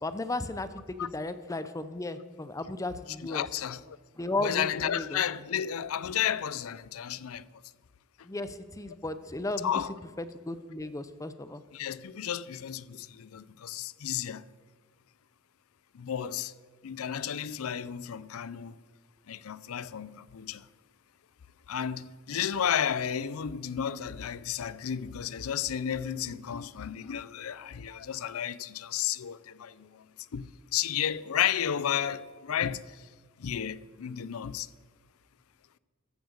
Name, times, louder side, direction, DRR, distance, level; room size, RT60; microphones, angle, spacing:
voice 1, 0.0-3.5 4.2-5.2 8.2-9.7 10.5-11.6, left 2 dB, 15° left, 0.5 m, -35 dB
voice 2, 3.2-4.0 4.4-7.5 9.6-9.9 11.7-14.4 15.9-16.5 16.8-18.8 19.3-20.7 21.7-30.1 30.3-33.1 33.4-34.7, left 9 dB, 70° left, 0.5 m, -32 dB
14.0 x 7.7 x 6.5 m
head